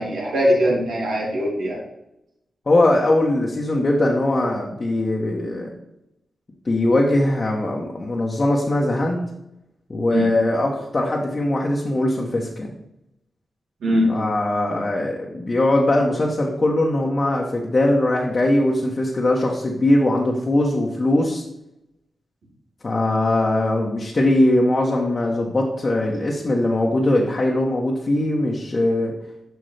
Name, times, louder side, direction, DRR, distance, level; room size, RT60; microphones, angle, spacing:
voice 1, 0.0-1.8 10.1-10.3 13.8-14.2, equal, 90° right, -5 dB, 2.8 m, -21 dB
voice 2, 2.7-5.7 6.6-9.2 9.9-12.7 14.1-21.4 22.8-29.1, left 1 dB, 45° left, -2 dB, 1.1 m, -20 dB
7.9 x 5.2 x 3.4 m, 0.84 s
cardioid pair, 50°, 0 cm